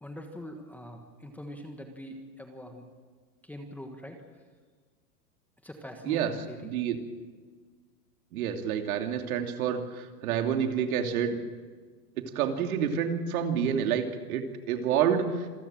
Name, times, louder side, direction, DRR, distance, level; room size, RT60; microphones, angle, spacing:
voice 1, 0.0-2.8 3.4-4.2 5.6-6.6, equal, 5° left, 4 dB, 1.4 m, -43 dB
voice 2, 6.6-7.0 8.3-11.4 12.2-15.5, right 8 dB, 60° right, 5 dB, 2.9 m, -28 dB
27.0 x 14.0 x 8.9 m, 1.5 s
supercardioid pair, 155°, 48 cm